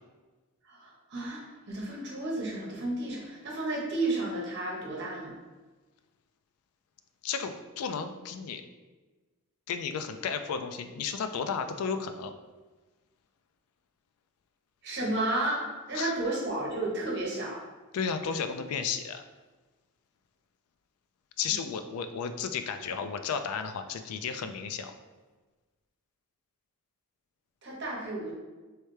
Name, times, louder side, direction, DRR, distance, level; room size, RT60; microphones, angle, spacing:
voice 1, 0.6-1.4 1.7-5.3 14.8-17.6 21.5-21.6 27.6-28.3, right 2 dB, 50° right, -3 dB, 1.0 m, -32 dB
voice 2, 7.2-8.6 9.7-12.3 15.9-16.1 17.9-19.2 21.4-24.9, left 6 dB, 85° left, 8 dB, 0.3 m, -33 dB
3.2 x 3.2 x 3.1 m, 1.2 s
head